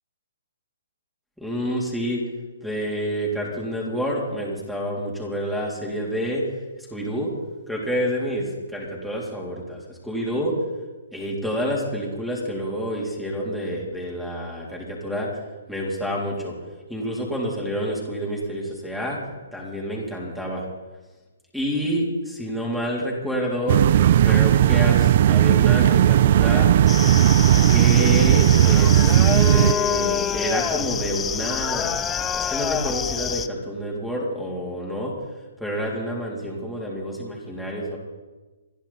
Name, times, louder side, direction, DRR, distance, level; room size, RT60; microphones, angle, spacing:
voice 1, 1.4-2.2 2.6-6.4 6.9-7.3 7.7-10.6 11.1-15.3 15.7-16.6 16.9-19.2 19.5-20.6 21.5-23.8 24.2-26.7 27.7-29.1 29.5-35.1 35.6-38.0, equal, ahead, -3 dB, 3.6 m, -28 dB
sound 1, 23.7-29.7, right 11 dB, 50° right, 0.4 m, -16 dB
sound 2, 26.9-33.5, left 8 dB, 15° left, 0.6 m, -27 dB
28.5 x 10.5 x 4.3 m, 1.2 s
hypercardioid pair, 140°, 0 cm